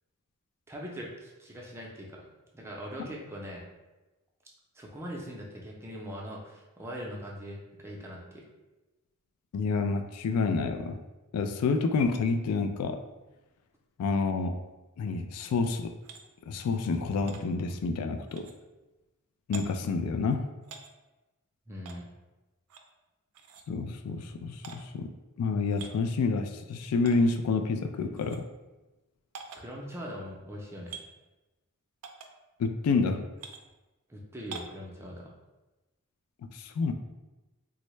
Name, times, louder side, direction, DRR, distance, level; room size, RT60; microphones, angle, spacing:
voice 1, 0.7-2.2 2.5-3.6 4.7-8.4 21.7-22.1 29.6-31.0 34.1-35.3, equal, 10° right, -3 dB, 0.5 m, -41 dB
voice 2, 9.5-11.0 11.3-13.0 14.0-14.6 15.0-15.9 16.5-18.5 19.5-20.5 23.7-25.1 25.4-28.5 32.6-33.2 36.5-36.9, left 4 dB, 85° left, 8 dB, 0.3 m, -28 dB
sound 1, 16.0-16.2 17.3-17.4 18.3-18.6 19.5-19.6 20.6-20.9 21.8-22.0 22.7-22.9 23.3-23.6 24.6-24.8 25.6-25.9 27.0-27.2 28.2-28.4 29.3-29.6 30.9-31.1 32.0-32.3 33.4-33.6 34.5-34.8, right 6 dB, 80° right, 0.4 m, -44 dB
3.5 x 2.1 x 3.1 m, 1.1 s
head